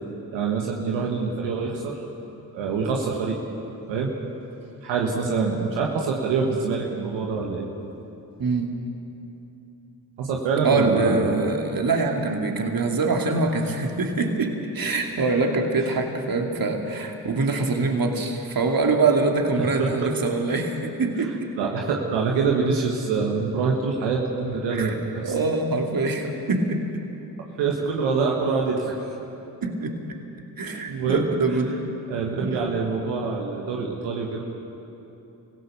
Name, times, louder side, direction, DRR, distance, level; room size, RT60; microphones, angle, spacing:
voice 1, 0.3-2.0 2.5-3.4 3.9-4.1 4.8-7.7 10.2-11.6 15.8-15.9 19.6-20.1 21.6-25.3 27.6-28.9 30.9-31.3 32.1-34.4, right 5 dB, 85° right, -1 dB, 1.6 m, -25 dB
voice 2, 8.4-8.7 10.6-21.5 24.7-26.8 29.6-30.0 30.6-31.8 32.4-32.7, right 3 dB, 50° right, 3 dB, 2.8 m, -24 dB
25.0 x 16.5 x 6.9 m, 3.0 s
hypercardioid pair, 40°, 44 cm